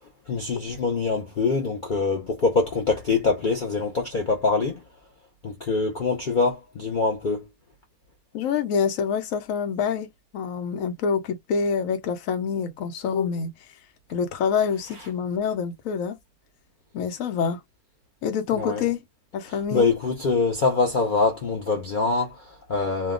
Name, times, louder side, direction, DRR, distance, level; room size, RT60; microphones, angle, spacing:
voice 1, 0.3-4.8 5.4-7.5 18.5-18.9 19.5-23.1, left 4 dB, 85° left, 0.4 m, -24 dB
voice 2, 8.3-10.1 10.3-13.7 14.1-16.2 16.9-17.6 18.2-19.0 19.3-19.9, left 6 dB, 65° left, 0.8 m, -26 dB
2.7 x 2.2 x 3.6 m
omnidirectional pair, 1.8 m